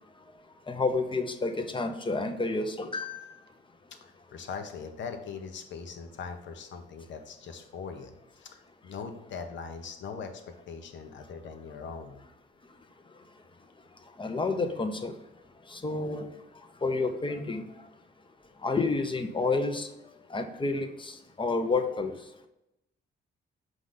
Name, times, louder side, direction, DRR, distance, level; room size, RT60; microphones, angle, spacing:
voice 1, 0.7-3.3 14.2-15.1 15.7-16.3 16.8-17.6 18.6-19.9 20.3-22.1, left 3 dB, 25° left, 6 dB, 0.9 m, -29 dB
voice 2, 4.0-10.4 10.7-12.2, left 5 dB, 70° left, 6 dB, 1.1 m, -41 dB
6.4 x 5.0 x 4.0 m, 0.89 s
cardioid pair, 90°, 20 cm